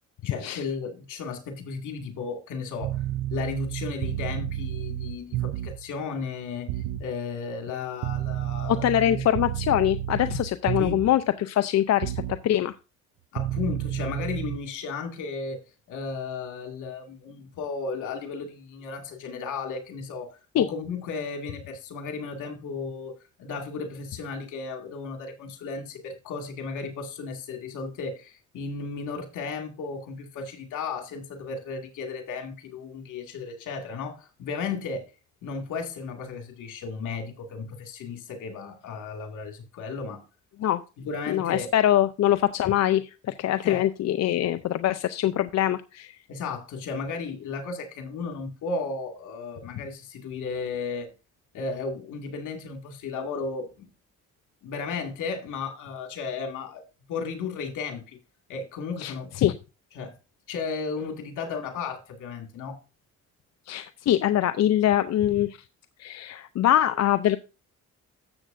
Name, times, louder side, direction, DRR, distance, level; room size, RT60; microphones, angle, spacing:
voice 1, 0.2-3.0 3.3-9.2 10.8-11.0 13.3-15.6 15.9-35.1 35.4-40.2 41.0-41.7 43.6-43.9 46.3-51.1 51.5-53.9 54.6-56.8 57.1-58.2 58.5-59.3 59.9-60.1 60.5-62.8, left 4 dB, 85° left, 2.3 m, -34 dB
sound 1, 2.8-5.9 6.7-7.1 8.0-11.2 12.0-12.4 13.4-14.6, right 13 dB, 80° right, 0.5 m, -31 dB
voice 2, 8.7-12.7 20.5-20.7 40.6-40.8 41.3-46.1 59.0-59.5 63.7-65.5 66.0-67.4, left 12 dB, 60° left, 0.6 m, -23 dB
13.5 x 7.5 x 2.6 m
cardioid pair, 90°, 30 cm